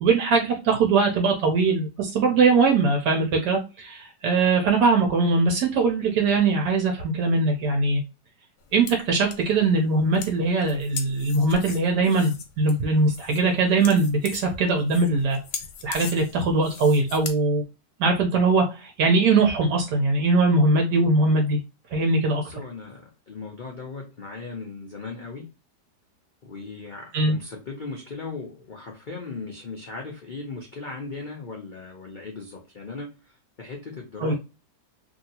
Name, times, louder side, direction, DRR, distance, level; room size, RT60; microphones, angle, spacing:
voice 1, 0.0-8.0 8.7-15.4 15.8-17.6 18.0-21.6 21.9-22.4 27.1-27.4 34.2-34.3, right 3 dB, 75° right, 1.2 m, -21 dB
sound 1, 8.6-17.3, left 7 dB, 90° left, 1.4 m, -39 dB
voice 2, 22.4-25.5 26.4-34.3, left 3 dB, 65° left, 0.4 m, -38 dB
2.9 x 2.7 x 2.7 m
omnidirectional pair, 1.8 m